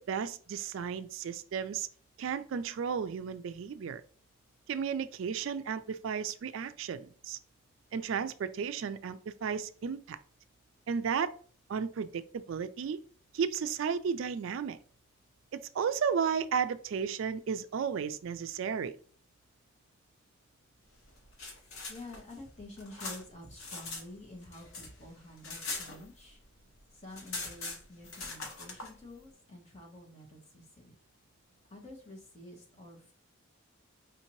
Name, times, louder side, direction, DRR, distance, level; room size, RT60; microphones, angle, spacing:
voice 1, 0.0-1.9 2.2-4.0 4.7-7.4 7.9-10.2 10.9-11.3 11.7-13.0 13.3-14.8 15.5-19.0, right 6 dB, 70° right, 12 dB, 0.3 m, -33 dB
sound 1, 21.1-24.0 24.3-26.5 26.8-26.9 27.1-28.9, left 3 dB, 80° left, 1.1 m, -41 dB
voice 2, 21.9-26.4 26.9-30.9 31.7-33.1, left 1 dB, 30° left, 0 dB, 1.2 m, -49 dB
5.0 x 2.7 x 3.0 m, 0.43 s
head